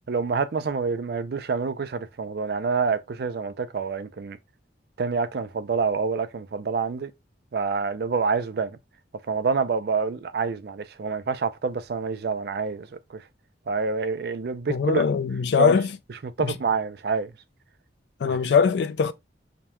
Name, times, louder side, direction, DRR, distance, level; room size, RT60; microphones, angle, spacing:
voice 1, 0.1-4.4 5.0-7.1 7.5-8.8 9.3-13.2 13.7-15.0 15.6-15.8 16.2-17.3 18.2-18.5, right 5 dB, 60° right, 0.4 m, -27 dB
voice 2, 14.7-15.9 16.4-16.5 18.2-19.1, left 5 dB, 70° left, 0.3 m, -21 dB
5.1 x 2.2 x 2.9 m
head